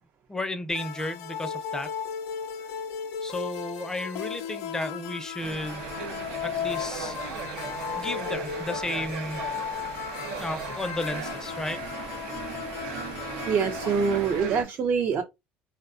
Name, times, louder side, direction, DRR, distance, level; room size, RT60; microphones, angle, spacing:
voice 1, 0.3-1.9 3.2-5.9 6.4-7.2 7.9-9.4 10.4-11.8, left 1 dB, 15° left, 0.4 m, -33 dB
sound 1, 0.7-14.4, left 7 dB, 85° left, 0.4 m, -36 dB
sound 2, 5.4-14.6, right 5 dB, 85° right, 0.7 m, -37 dB
voice 2, 13.5-15.2, right 6 dB, 50° right, 0.5 m, -25 dB
2.6 x 2.1 x 2.4 m
supercardioid pair, 100°, 5 cm